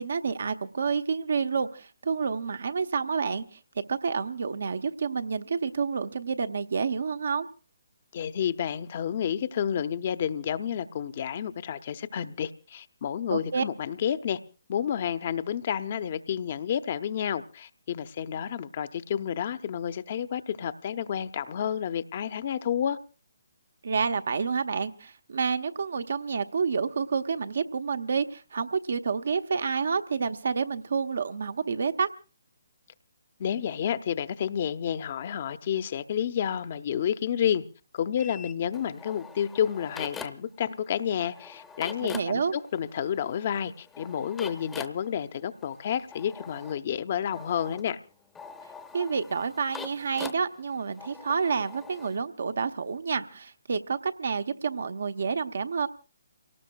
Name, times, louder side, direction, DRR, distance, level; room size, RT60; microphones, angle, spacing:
voice 1, 0.0-3.6 3.9-7.5 13.3-13.6 23.8-32.1 42.0-42.6 48.9-55.9, right 5 dB, 65° right, 9 dB, 0.9 m, -29 dB
voice 2, 8.1-14.4 14.7-23.0 33.4-37.6 37.9-48.0, left 9 dB, 45° left, 12 dB, 0.7 m, -30 dB
sound 1, 38.2-40.6 40.9-52.2, left 5 dB, 10° left, 0.8 m, -44 dB
29.5 x 18.5 x 2.3 m, 0.35 s
figure-of-eight pair, 140°, 0 cm